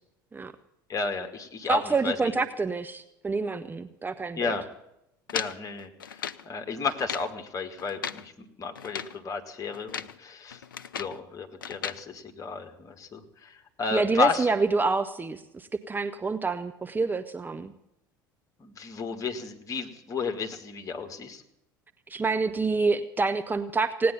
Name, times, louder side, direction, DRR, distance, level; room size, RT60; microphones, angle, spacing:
voice 1, 0.9-2.3 4.4-4.7 5.3-10.6 10.9-14.5 18.6-21.4, left 4 dB, 30° left, 5 dB, 2.1 m, -33 dB
voice 2, 1.6-4.6 13.9-17.7 22.1-24.1, right 4 dB, 15° right, 9 dB, 0.9 m, -27 dB
sound 1, 5.3-6.5 6.9-7.3 7.8-8.3 8.8-9.2 9.7-10.2 10.5-11.2 11.6-12.0, left 7 dB, 75° left, 0.5 m, -36 dB
17.5 x 9.5 x 8.7 m, 0.81 s
figure-of-eight pair, 65°, 11 cm